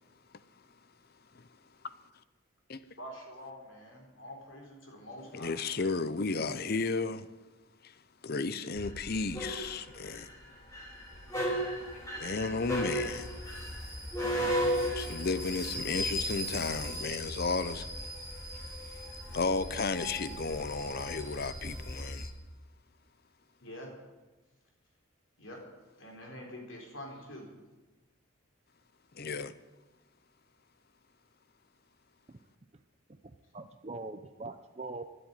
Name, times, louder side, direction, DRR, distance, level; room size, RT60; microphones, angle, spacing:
voice 1, 3.0-5.6 23.6-23.9 25.4-25.6 26.0-27.5, equal, 65° left, 3.8 m, -46 dB
voice 2, 5.4-7.2 8.2-10.3 12.2-13.2 14.8-17.9 19.3-22.3 29.2-29.5, left 4 dB, 45° left, 0.7 m, -33 dB
sound 1, 8.8-22.3, equal, 15° left, 3.9 m, -36 dB
voice 3, 33.1-35.0, right 3 dB, 30° right, 0.6 m, -43 dB
13.0 x 10.0 x 9.2 m
head